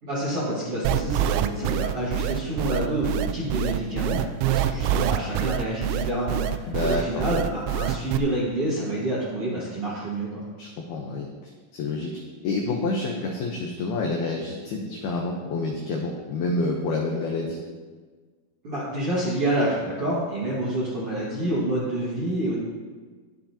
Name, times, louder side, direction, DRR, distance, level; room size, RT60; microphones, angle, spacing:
voice 1, 0.0-10.4 18.6-22.5, right 1 dB, 50° right, -8 dB, 1.7 m, -28 dB
sound 1, 0.9-8.2, right 11 dB, 85° right, 3.2 m, -25 dB
voice 2, 6.7-7.2 10.6-11.3 11.7-12.1 12.4-17.6, left 3 dB, 85° left, 0 dB, 2.2 m, -28 dB
21.0 x 7.2 x 2.9 m, 1.4 s
omnidirectional pair, 5.8 m